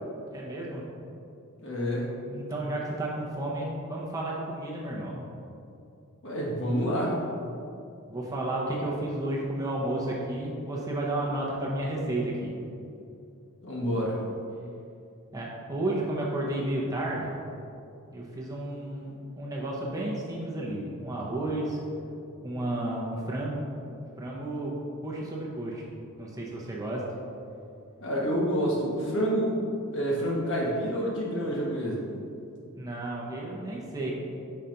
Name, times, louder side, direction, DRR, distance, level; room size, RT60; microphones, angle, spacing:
voice 1, 0.3-0.9 2.3-5.3 8.1-12.6 15.3-17.4 18.1-21.8 22.4-23.7 24.2-24.7 25.0-25.8 26.2-27.0 32.8-34.1, right 1 dB, 15° right, -4 dB, 0.8 m, -32 dB
voice 2, 1.6-2.1 6.2-7.2 13.6-14.2 28.0-29.6 29.9-32.0, equal, 60° left, -4 dB, 1.4 m, -28 dB
5.7 x 4.1 x 5.1 m, 2.6 s
head